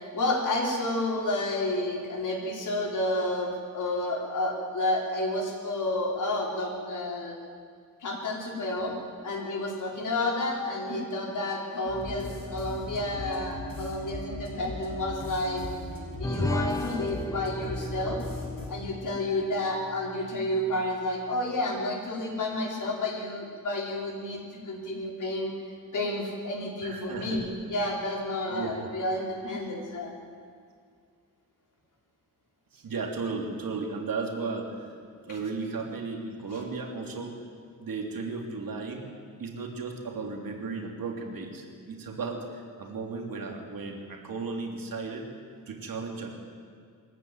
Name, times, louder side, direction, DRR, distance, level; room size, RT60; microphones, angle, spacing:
voice 1, 0.0-7.4 8.0-8.9 9.2-15.6 16.2-18.2 18.7-25.5 25.9-30.1, left 1 dB, 60° left, -1 dB, 4.7 m, -30 dB
sound 1, 11.9-18.7, left 2 dB, 90° left, 5.5 m, -39 dB
sound 2, 16.2-20.9, left 1 dB, 10° left, 0.8 m, -35 dB
voice 2, 26.8-27.4 28.5-28.9 32.7-34.9 35.3-37.4 37.8-39.0 39.4-45.3 45.7-46.3, right 4 dB, 75° right, 1 dB, 3.3 m, -35 dB
23.0 x 14.0 x 9.4 m, 2.1 s
wide cardioid pair, 175°, 34 cm